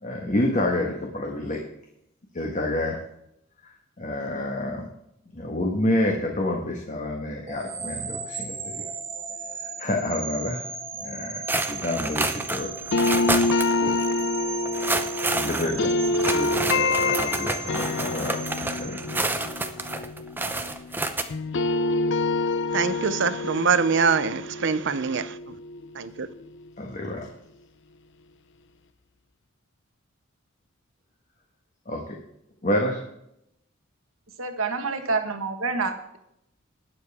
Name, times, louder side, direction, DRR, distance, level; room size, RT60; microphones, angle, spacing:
voice 1, 0.0-1.6 2.3-3.0 4.0-4.9 5.3-8.8 9.8-10.6 11.0-11.4 11.7-12.7 13.8-13.9 15.3-18.4 18.8-19.0 26.8-27.3 31.9-32.0 32.6-33.0, left 1 dB, 40° left, 1.5 m, -28 dB
sound 1, 7.5-19.6, right 5 dB, 30° right, 1.4 m, -37 dB
sound 2, 11.5-13.8 14.0-14.1 14.7-21.2, right 2 dB, 10° right, 0.7 m, -29 dB
sound 3, 12.9-21.0 21.3-26.2, left 3 dB, 60° left, 0.5 m, -27 dB
voice 2, 22.7-25.5 25.9-26.3, right 5 dB, 60° right, 0.7 m, -24 dB
voice 3, 34.4-36.2, right 4 dB, 80° right, 1.5 m, -28 dB
19.0 x 6.9 x 3.6 m
head